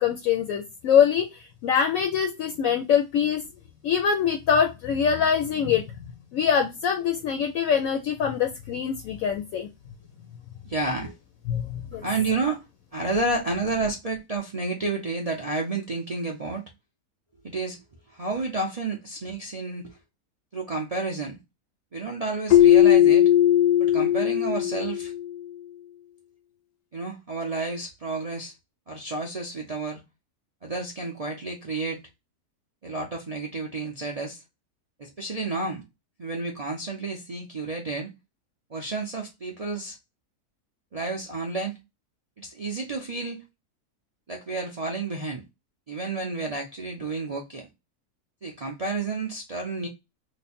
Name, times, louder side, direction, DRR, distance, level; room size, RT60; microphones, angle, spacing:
voice 1, 0.0-3.4 3.8-5.8 6.3-9.7 11.5-12.1, left 7 dB, 70° left, 0.9 m, -24 dB
voice 2, 10.6-11.2 12.0-12.6 12.9-16.7 17.4-17.8 18.1-20.0 20.5-21.4 21.9-23.3 23.8-25.1 26.9-28.5 28.9-30.0 30.6-32.0 32.8-34.4 35.0-35.8 36.2-38.1 38.7-40.0 40.9-41.8 42.4-43.4 44.3-45.4 45.9-47.7 48.4-49.9, right 3 dB, 55° right, 0.4 m, -30 dB
Keyboard (musical), 22.5-25.3, left 11 dB, 85° left, 1.2 m, -18 dB
3.1 x 2.2 x 4.2 m
omnidirectional pair, 1.6 m